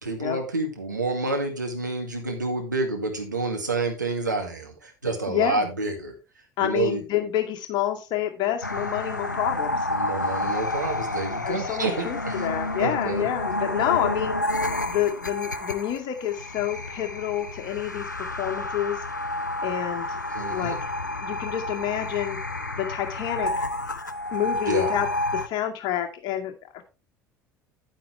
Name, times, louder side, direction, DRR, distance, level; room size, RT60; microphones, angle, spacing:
voice 1, 0.0-6.1 6.6-7.0 9.9-12.4 12.8-13.3 20.3-20.8 24.7-24.9, right 3 dB, 85° right, 2 dB, 2.1 m, -28 dB
voice 2, 5.3-5.7 6.6-9.8 11.4-14.3 14.9-19.0 19.6-20.2 20.5-20.9 21.2-22.4 22.8-23.5 24.3-25.1 25.3-26.8, left 11 dB, 50° left, 4 dB, 2.1 m, -28 dB
sound 1, 8.6-25.5, left 2 dB, 90° left, 0.6 m, -30 dB
9.8 x 9.1 x 3.3 m, 0.29 s
figure-of-eight pair, 65°, 10 cm